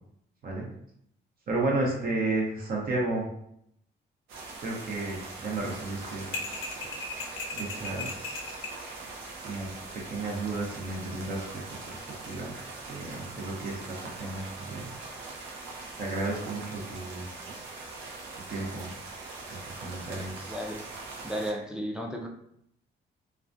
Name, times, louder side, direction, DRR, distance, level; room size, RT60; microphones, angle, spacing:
voice 1, 1.5-3.3 4.6-6.3 7.5-8.6 9.4-9.7 10.1-11.6 11.9-14.9 15.4-15.5 16.0-17.2 18.5-18.9 19.6-20.5, right 2 dB, 50° right, -1 dB, 0.7 m, -33 dB
sound 1, 4.3-21.5, right 3 dB, 85° right, 0.6 m, -42 dB
sound 2, 6.3-8.8, left 3 dB, 85° left, 0.6 m, -36 dB
voice 2, 20.5-20.8 21.2-22.3, equal, 5° right, 0 dB, 0.4 m, -33 dB
2.3 x 2.2 x 2.5 m, 0.73 s
cardioid pair, 90°, 20 cm